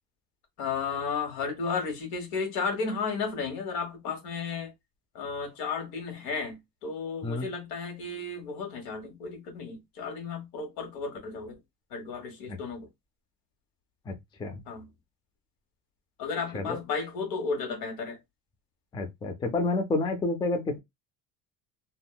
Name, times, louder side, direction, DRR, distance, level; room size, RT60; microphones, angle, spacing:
voice 1, 0.6-4.7 5.1-11.5 11.9-12.9 14.6-14.9 16.2-18.2, left 5 dB, 75° left, 1.5 m, -33 dB
voice 2, 18.9-20.8, left 2 dB, 15° left, 0.3 m, -29 dB
3.5 x 2.2 x 2.3 m
cardioid pair, 155°, 37 cm